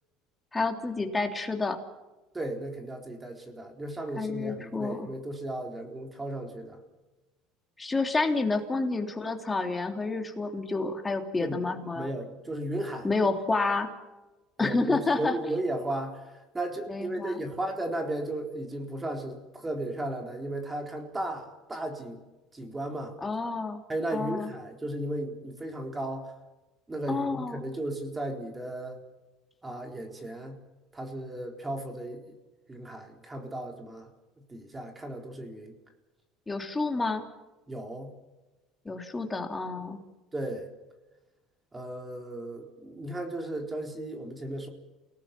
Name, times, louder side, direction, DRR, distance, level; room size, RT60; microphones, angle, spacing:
voice 1, 0.5-1.8 4.2-5.1 7.8-12.1 13.0-13.9 14.6-15.4 16.9-17.4 23.2-23.8 24.1-24.5 27.1-27.6 36.5-37.2 38.8-40.0, left 3 dB, 15° left, 4 dB, 3.2 m, -29 dB
voice 2, 2.3-6.8 11.4-11.6 12.0-13.1 14.6-16.3 16.5-22.2 22.5-23.1 23.9-26.3 26.9-29.0 29.6-30.6 30.9-32.3 32.7-34.1 34.5-35.8 37.7-38.1 40.3-40.7 41.7-44.7, right 1 dB, 15° right, 3 dB, 4.1 m, -35 dB
29.0 x 18.5 x 6.1 m, 1.1 s
supercardioid pair, 115°, 0 cm